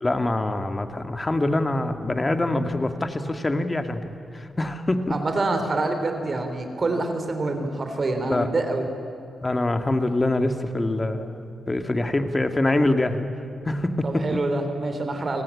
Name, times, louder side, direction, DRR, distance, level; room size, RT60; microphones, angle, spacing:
voice 1, 0.0-4.0 4.3-5.2 8.3-8.5 9.4-13.3 13.6-14.4, left 2 dB, 30° left, 8 dB, 2.3 m, -24 dB
voice 2, 5.1-8.9 14.0-15.4, right 2 dB, 45° right, 6 dB, 3.9 m, -26 dB
28.5 x 19.0 x 8.7 m, 3.0 s
supercardioid pair, 45°, 0 cm